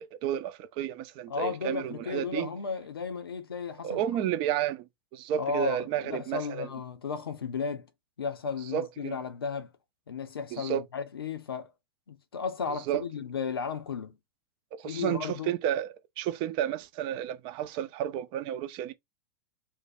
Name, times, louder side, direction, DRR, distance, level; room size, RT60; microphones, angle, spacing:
voice 1, 0.0-2.5 3.8-6.7 8.7-9.2 10.5-10.8 12.9-13.0 14.7-18.9, right 11 dB, 45° right, 0.6 m, -31 dB
voice 2, 1.3-4.3 5.4-7.9 8.2-9.7 10.1-11.7 12.1-14.1 14.8-15.5, left 5 dB, 85° left, 0.6 m, -34 dB
2.7 x 2.2 x 4.1 m
hypercardioid pair, 100°, 12 cm